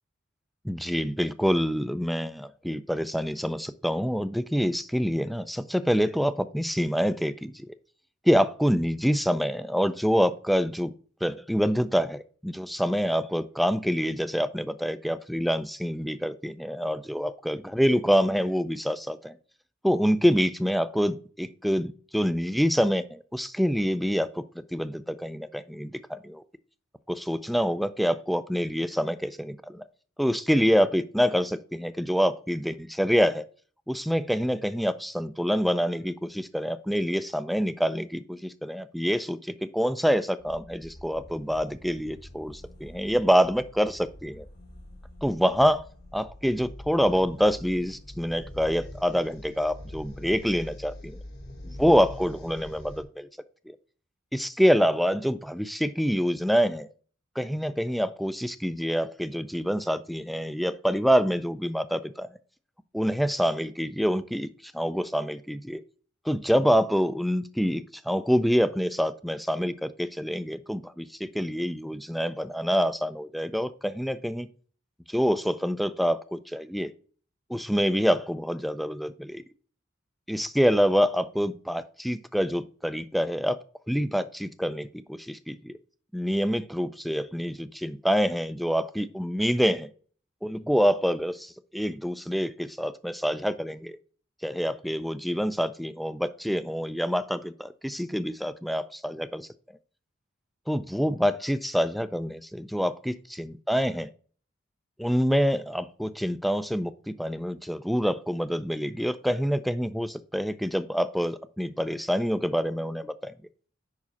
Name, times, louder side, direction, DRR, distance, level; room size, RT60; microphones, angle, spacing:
voice 1, 0.6-7.7 8.3-10.9 11.2-19.4 19.8-24.4 24.7-26.4 27.1-29.8 30.2-33.5 33.9-44.5 45.2-45.9 46.1-51.2 51.6-53.3 53.7-53.8 54.3-56.9 57.4-62.3 62.9-65.8 66.3-74.5 75.1-76.9 77.5-79.4 80.3-83.6 83.9-85.7 86.1-89.9 90.4-94.0 94.4-99.5 100.7-104.1 105.0-113.3, equal, ahead, 13 dB, 0.3 m, -26 dB
sound 1, 40.4-53.0, left 1 dB, 55° left, 1.6 m, -44 dB
5.2 x 4.8 x 5.7 m, 0.43 s
head